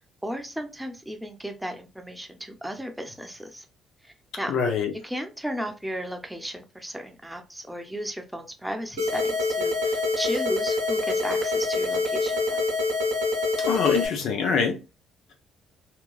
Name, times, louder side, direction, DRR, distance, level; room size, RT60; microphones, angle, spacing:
voice 1, 0.2-3.6 4.0-4.5 5.0-12.6, equal, 5° right, 0.7 m, -35 dB
voice 2, 4.5-4.9 13.7-14.8, left 6 dB, 65° left, 0.6 m, -24 dB
sound 1, 9.0-14.1, left 3 dB, 85° right, 0.7 m, -25 dB
2.9 x 2.2 x 2.3 m
hypercardioid pair, 45°, 0 cm